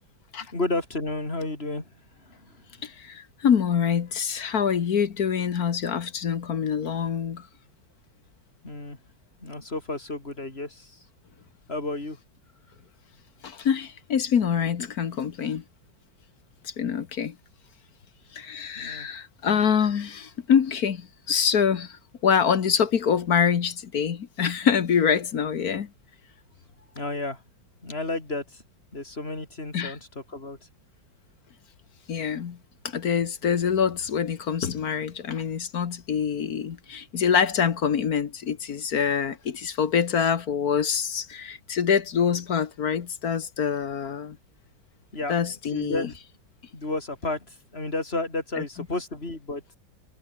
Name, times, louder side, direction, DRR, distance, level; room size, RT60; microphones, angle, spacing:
voice 1, 0.5-1.9 2.2-2.6 8.6-9.0 9.4-11.0 11.7-12.2 18.7-19.1 26.9-27.4 27.8-28.6 28.9-30.6 45.1-45.3 45.7-46.2 46.7-49.6, left 2 dB, 30° left, 5.1 m, -32 dB
voice 2, 2.8-7.5 13.4-15.6 16.6-17.3 18.3-25.9 29.7-29.9 32.1-32.6 32.8-44.4 45.3-46.1, left 7 dB, 55° left, 1.6 m, -25 dB
omnidirectional pair, 2.1 m